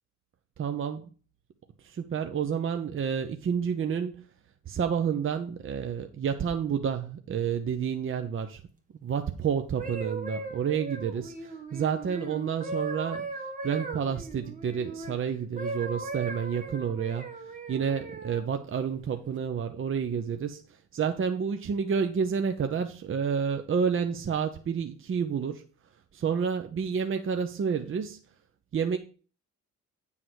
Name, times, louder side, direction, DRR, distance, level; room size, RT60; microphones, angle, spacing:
voice 1, 0.6-1.1 1.8-4.2 4.7-8.6 9.0-13.3 13.6-17.3 17.7-20.6 20.9-25.6 26.1-28.2 28.7-29.0, right 7 dB, 45° right, 7 dB, 0.9 m, -29 dB
sound 1, 9.6-15.1 15.6-18.4 19.1-19.4, right 3 dB, 25° right, 1.8 m, -38 dB
9.3 x 3.8 x 6.4 m, 0.37 s
cardioid pair, 90°, 30 cm